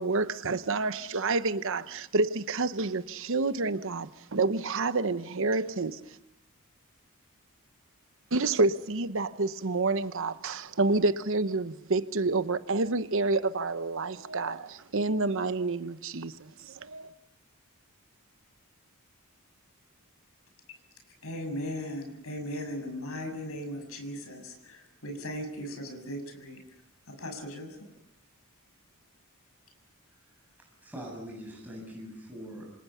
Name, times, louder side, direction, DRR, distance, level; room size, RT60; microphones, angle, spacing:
voice 1, 0.0-6.0 8.3-17.1, right 3 dB, 60° right, 1.0 m, -28 dB
voice 2, 21.2-26.6 27.2-27.7, equal, 70° left, 6.7 m, -37 dB
voice 3, 30.6-32.7, equal, 10° right, 7.8 m, -43 dB
28.0 x 26.0 x 5.7 m
head